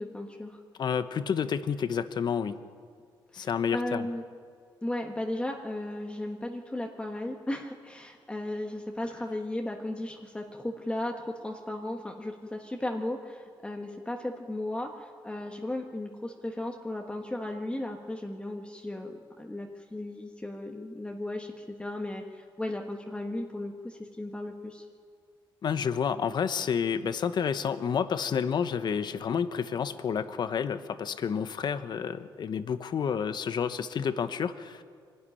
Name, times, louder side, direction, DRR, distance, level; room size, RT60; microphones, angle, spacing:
voice 1, 0.0-0.6 3.3-4.2 4.8-24.8, left 1 dB, 10° left, 2 dB, 1.5 m, -35 dB
voice 2, 0.8-2.6 3.3-4.1 25.6-34.8, left 7 dB, 55° left, 12 dB, 1.0 m, -30 dB
24.0 x 12.5 x 10.0 m, 2.1 s
cardioid pair, 95°, 9 cm